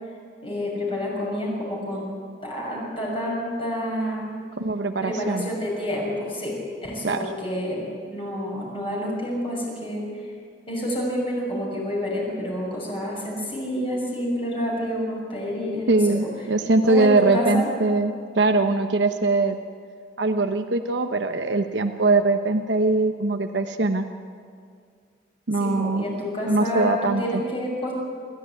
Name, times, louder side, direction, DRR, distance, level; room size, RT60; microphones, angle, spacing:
voice 1, 0.4-2.1 2.4-4.3 5.0-6.6 6.8-10.3 10.7-16.2 16.8-17.7 25.6-27.9, equal, 30° left, -3 dB, 6.3 m, -28 dB
voice 2, 4.6-5.5 7.0-7.2 15.9-19.6 20.2-24.1 25.5-26.1 26.5-27.4, right 2 dB, 85° right, 6 dB, 1.0 m, -22 dB
28.5 x 13.0 x 9.7 m, 2.1 s
head